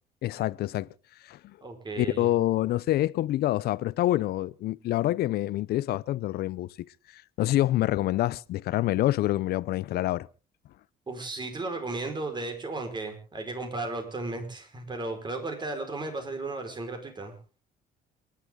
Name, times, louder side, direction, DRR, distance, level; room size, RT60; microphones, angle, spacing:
voice 1, 0.2-0.9 1.2-1.6 2.0-6.7 7.1-10.3, left 15 dB, 70° left, 0.7 m, -27 dB
voice 2, 1.6-2.3 11.1-17.3, right 2 dB, 25° right, 5.1 m, -35 dB
28.5 x 11.0 x 3.8 m
cardioid pair, 110°, 17 cm